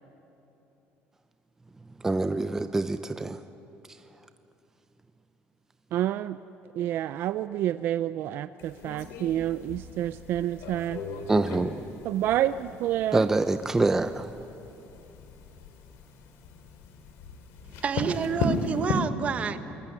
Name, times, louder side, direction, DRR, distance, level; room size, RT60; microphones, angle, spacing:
voice 1, 2.0-3.4 11.3-11.8 13.1-14.3, right 2 dB, 10° right, 10 dB, 0.6 m, -25 dB
voice 2, 5.9-6.4 6.7-11.0 12.0-13.3, right 12 dB, 55° right, 13 dB, 0.5 m, -28 dB
sound 1, 8.6-19.0, left 3 dB, 80° left, 3.4 m, -36 dB
voice 3, 17.8-19.6, right 6 dB, 30° right, 10 dB, 1.3 m, -28 dB
27.5 x 21.5 x 9.9 m, 3.0 s
cardioid pair, 155°, 4 cm